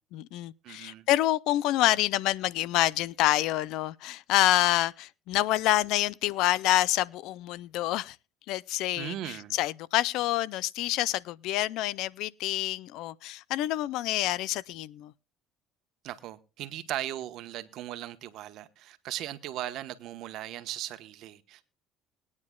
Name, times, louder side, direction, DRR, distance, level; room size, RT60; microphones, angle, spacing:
voice 1, 0.1-8.2 8.5-15.1, left 15 dB, 70° left, 0.5 m, -27 dB
voice 2, 0.6-1.1 8.9-9.6 16.0-21.6, right 13 dB, 60° right, 1.1 m, -38 dB
21.0 x 9.6 x 2.3 m
cardioid pair, 115°, 0 cm